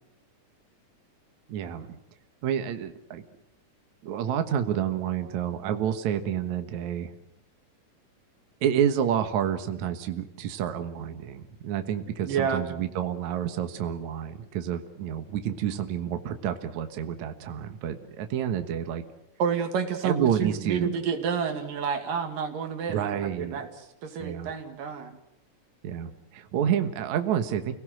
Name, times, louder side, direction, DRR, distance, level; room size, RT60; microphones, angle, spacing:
voice 1, 1.5-2.0 2.4-3.2 4.0-7.1 8.6-19.0 20.0-20.9 22.9-23.6 24.2-24.5 25.8-27.7, right 9 dB, 65° right, 8 dB, 2.6 m, -29 dB
voice 2, 12.2-12.6 19.4-23.7 24.0-25.2, right 6 dB, 85° right, 6 dB, 4.0 m, -29 dB
29.5 x 18.0 x 7.8 m, 0.82 s
omnidirectional pair, 3.8 m